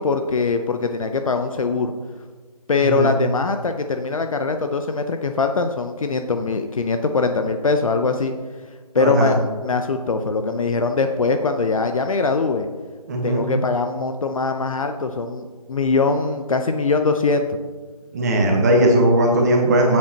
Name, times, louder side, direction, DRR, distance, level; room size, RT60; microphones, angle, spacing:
voice 1, 0.0-1.9 2.7-8.3 8.9-12.7 13.2-17.6, left 4 dB, 55° left, 6 dB, 0.7 m, -22 dB
voice 2, 2.8-3.1 9.0-9.3 13.1-13.4 18.1-20.0, right 1 dB, 25° right, 0 dB, 1.3 m, -18 dB
13.5 x 7.5 x 2.9 m, 1.5 s
figure-of-eight pair, 160°, 20 cm